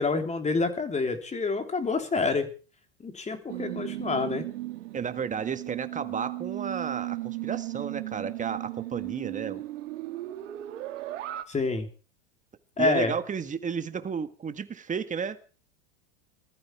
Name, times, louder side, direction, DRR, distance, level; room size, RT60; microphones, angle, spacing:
voice 1, 0.0-2.5 3.0-4.5 11.5-11.9 12.8-13.1, left 3 dB, 20° left, 3.4 m, -27 dB
sound 1, 3.5-11.4, right 16 dB, 75° right, 2.3 m, -36 dB
voice 2, 4.9-9.6 12.8-15.4, right 6 dB, 20° right, 1.7 m, -32 dB
21.0 x 14.0 x 4.7 m
hypercardioid pair, 110°, 37 cm